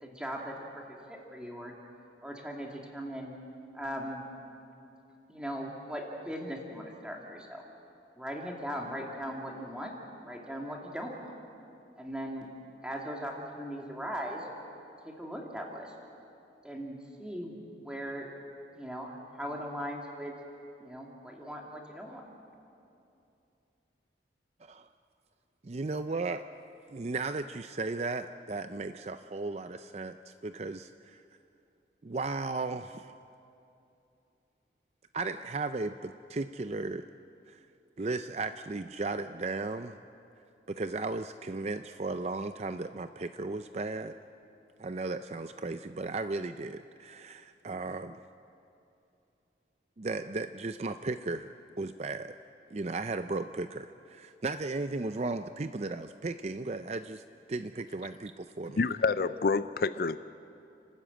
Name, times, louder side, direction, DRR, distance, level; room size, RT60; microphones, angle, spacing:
voice 1, 0.0-1.7 2.2-3.3 3.7-4.2 5.3-7.6 8.2-9.9 10.2-11.3 12.0-12.5 12.8-14.5 15.0-15.9 16.6-17.5 17.8-18.3 18.7-20.4 20.8-22.2, equal, 5° right, -1 dB, 2.7 m, -39 dB
voice 2, 25.6-26.4 26.9-31.2 32.0-33.1 35.1-37.1 37.5-37.6 38.0-40.0 40.7-44.1 44.8-48.2 50.0-51.5 51.8-52.3 52.7-57.2 57.5-58.8, right 3 dB, 35° right, 10 dB, 0.4 m, -35 dB
voice 3, 58.7-60.2, left 4 dB, 55° left, 13 dB, 0.4 m, -28 dB
30.0 x 13.0 x 8.8 m, 2.7 s
head